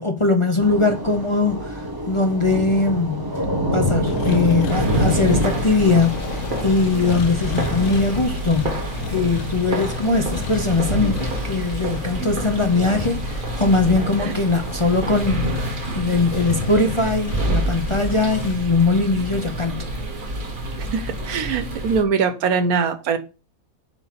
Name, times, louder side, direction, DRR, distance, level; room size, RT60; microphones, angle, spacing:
voice 1, 0.0-3.3 3.7-19.9, left 3 dB, 30° left, 0.6 m, -21 dB
Thunder / Rain, 0.6-13.4, equal, 15° right, 1.1 m, -28 dB
sound 1, 4.0-18.5, left 7 dB, 70° left, 0.9 m, -34 dB
sound 2, 4.7-22.0, right 1 dB, 35° right, 1.4 m, -28 dB
voice 2, 20.9-23.2, right 5 dB, 90° right, 1.3 m, -22 dB
7.7 x 3.0 x 5.8 m
omnidirectional pair, 1.5 m